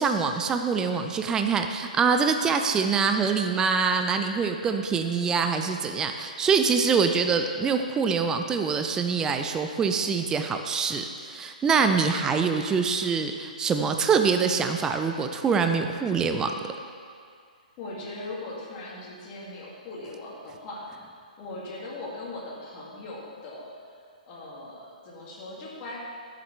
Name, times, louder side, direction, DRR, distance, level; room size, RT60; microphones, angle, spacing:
voice 1, 0.0-16.5, right 5 dB, 15° right, 6 dB, 0.4 m, -24 dB
voice 2, 11.8-12.1 17.8-26.0, left 2 dB, 30° left, -6 dB, 2.4 m, -40 dB
12.0 x 7.3 x 3.4 m, 2.2 s
figure-of-eight pair, 125°, 5 cm